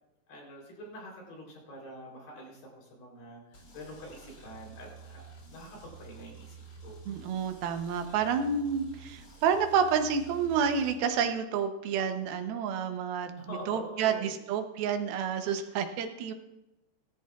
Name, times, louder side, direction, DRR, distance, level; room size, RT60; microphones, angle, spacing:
voice 1, 0.3-7.0 13.4-14.4, equal, 70° left, -1 dB, 5.2 m, -46 dB
sound 1, 3.5-10.9, right 5 dB, 35° left, 5.5 m, -50 dB
voice 2, 7.1-16.3, right 7 dB, 80° right, 7 dB, 2.7 m, -29 dB
18.0 x 13.5 x 2.4 m, 0.91 s
omnidirectional pair, 4.4 m